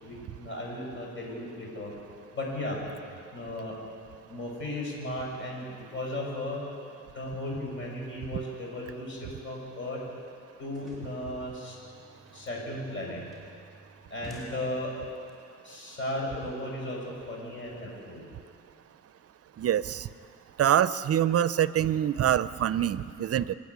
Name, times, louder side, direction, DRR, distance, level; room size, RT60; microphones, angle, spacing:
voice 1, 0.0-1.9 2.4-2.8 3.3-3.7 4.3-6.6 7.1-9.2 9.4-10.0 10.6-11.8 12.3-13.2 14.1-14.9 15.6-17.0 17.3-18.2, left 1 dB, 40° left, -2 dB, 6.3 m, -35 dB
sound 1, 10.5-15.3, right 2 dB, ahead, 7.1 m, -51 dB
voice 2, 19.6-20.1 20.6-23.5, right 10 dB, 50° right, 16 dB, 0.6 m, -25 dB
28.0 x 10.0 x 9.6 m, 2.3 s
cardioid pair, 90°, 30 cm